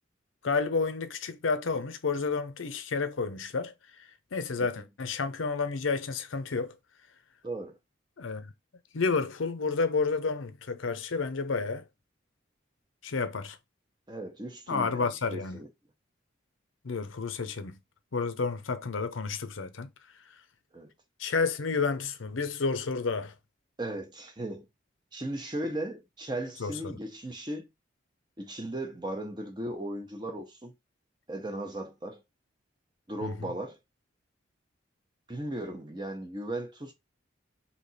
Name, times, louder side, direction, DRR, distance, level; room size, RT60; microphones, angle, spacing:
voice 1, 0.4-3.7 4.3-6.7 8.2-8.5 8.9-11.8 13.0-13.6 14.7-15.6 16.8-17.8 18.1-19.9 21.2-23.3 26.6-27.0 33.2-33.5, left 4 dB, 85° left, 0.7 m, -30 dB
voice 2, 7.4-7.8 14.1-15.7 20.7-20.9 23.8-24.7 25.1-27.7 28.4-30.7 31.3-32.2 33.1-33.8 35.3-36.9, right 1 dB, 20° right, 0.8 m, -37 dB
3.3 x 2.8 x 4.1 m
head